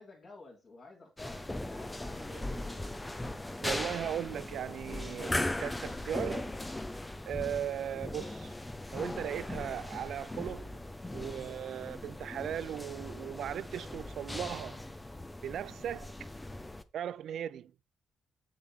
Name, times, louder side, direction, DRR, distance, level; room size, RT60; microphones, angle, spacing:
voice 1, 0.0-2.8 7.7-7.8, left 3 dB, 40° left, 3.3 m, -52 dB
sound 1, 1.2-16.8, left 1 dB, 15° left, 1.0 m, -39 dB
voice 2, 3.6-6.5 7.3-8.5 8.9-10.8 11.1-14.8 15.4-16.1 16.9-17.7, right 10 dB, 70° right, 0.5 m, -38 dB
7.4 x 7.0 x 4.4 m
cardioid pair, 90°, 0 cm